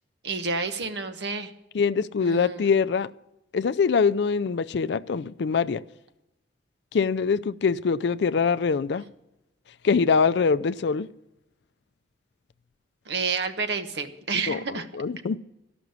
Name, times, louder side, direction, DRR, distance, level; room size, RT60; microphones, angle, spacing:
voice 1, 0.2-1.5 2.2-2.7 13.1-14.9, right 4 dB, 65° right, 1.1 m, -29 dB
voice 2, 1.7-3.1 3.5-5.8 6.9-9.1 9.8-11.1 14.5-15.4, left 5 dB, 65° left, 0.4 m, -23 dB
13.0 x 6.1 x 9.4 m
head